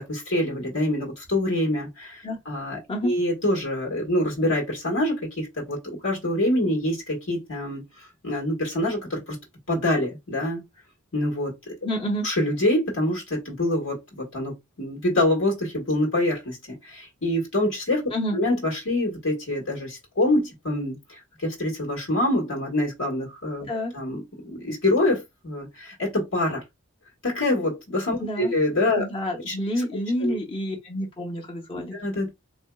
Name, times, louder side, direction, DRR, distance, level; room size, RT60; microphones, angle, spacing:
voice 1, 0.0-9.4 9.7-10.6 11.1-11.7 12.2-14.5 14.8-16.6 16.8-23.7 23.9-26.6 27.2-29.0 29.5-29.6 30.2-30.4 31.9-32.3, left 1 dB, 75° left, 1.5 m, -25 dB
voice 2, 11.8-12.3 18.1-18.4 23.7-23.9 28.2-28.5 29.0-31.9, equal, 25° left, 0.8 m, -28 dB
4.3 x 2.7 x 2.3 m
head